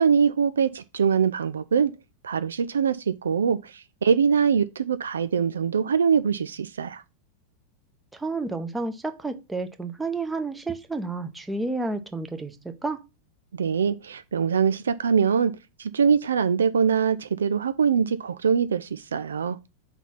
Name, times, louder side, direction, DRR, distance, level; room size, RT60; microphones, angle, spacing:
voice 1, 0.0-1.9 2.2-3.7 4.0-7.0 13.5-15.5 15.8-19.6, right 6 dB, 70° right, 0.4 m, -23 dB
voice 2, 8.1-12.6 12.8-13.0, right 3 dB, 10° right, 0.9 m, -30 dB
5.2 x 4.1 x 5.7 m
figure-of-eight pair, 90°, 0 cm